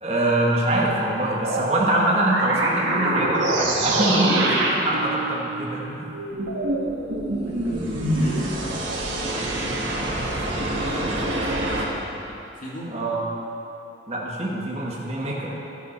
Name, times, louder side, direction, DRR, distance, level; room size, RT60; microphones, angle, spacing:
voice 1, 0.0-6.1 12.9-13.2 14.1-15.5, right 1 dB, 35° right, -4 dB, 1.3 m, -24 dB
sound 1, 1.4-11.8, right 2 dB, 90° right, 1.5 m, -25 dB
voice 2, 7.4-9.8 10.2-12.1 12.6-13.0, equal, 45° left, -5 dB, 2.0 m, -38 dB
12.5 x 10.5 x 4.4 m, 3.0 s
head